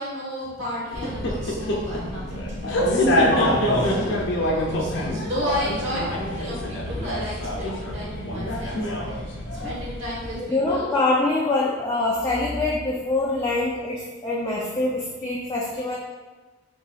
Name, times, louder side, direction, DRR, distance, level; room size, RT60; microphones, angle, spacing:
voice 1, 0.0-8.8 9.0-9.2 9.5-10.9, equal, 75° right, -6 dB, 1.3 m, -33 dB
sound 1, 0.9-10.4, left 1 dB, 70° left, 0.6 m, -25 dB
voice 2, 10.4-16.0, left 2 dB, 15° left, -5 dB, 0.3 m, -24 dB
4.1 x 2.7 x 2.4 m, 1.3 s
head